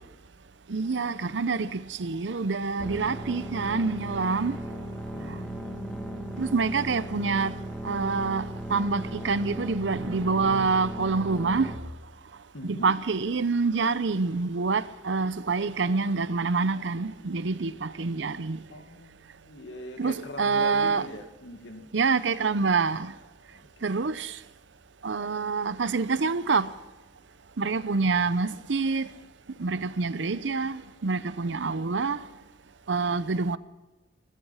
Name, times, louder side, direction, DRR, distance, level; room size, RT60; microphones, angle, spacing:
voice 1, 0.7-4.6 6.4-7.5 7.8-11.7 12.6-18.6 20.0-21.1 21.9-23.1 23.8-24.3 25.0-26.7 27.6-29.1 29.6-32.2 32.9-33.6, right 4 dB, 80° right, 0.7 m, -26 dB
sound 1, 2.8-11.8, right 1 dB, 5° left, 1.4 m, -37 dB
voice 2, 5.1-6.5 12.5-13.0 18.7-21.9 23.5-24.1, left 1 dB, 80° left, 2.1 m, -42 dB
16.5 x 13.0 x 5.7 m
head